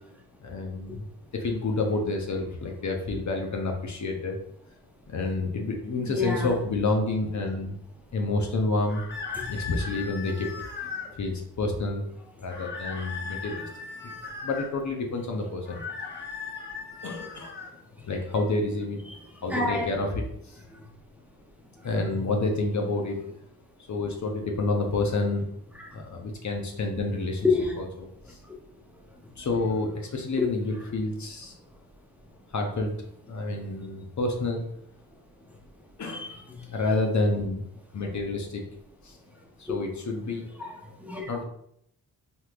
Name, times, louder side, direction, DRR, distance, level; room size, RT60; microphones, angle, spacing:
voice 1, 0.4-1.0 1.3-4.4 5.1-7.7 8.1-9.0 9.5-10.5 11.2-12.0 12.4-13.6 14.0-14.1 14.4-16.1 17.0-17.5 18.0-19.1 19.4-20.1 20.5-20.6 21.8-23.2 23.9-25.5 25.9-27.5 27.8-28.4 29.4-31.5 32.5-32.9 33.3-34.6 36.0-36.3 36.7-37.6 37.9-38.6 39.0-39.2 39.6-40.4 41.3-41.4, left 2 dB, 50° left, 2 dB, 0.7 m, -29 dB
voice 2, 6.1-6.5 9.3-9.5 19.1-19.2 19.5-19.9 25.8-25.9 27.4-27.8 30.4-30.5 36.1-36.6 40.6-41.4, left 3 dB, 5° right, -1 dB, 0.8 m, -28 dB
sound 1, 8.9-11.1 12.5-14.7 15.6-17.7, left 5 dB, 25° left, 1.1 m, -37 dB
3.5 x 2.8 x 2.4 m, 0.72 s
supercardioid pair, 50°, 38 cm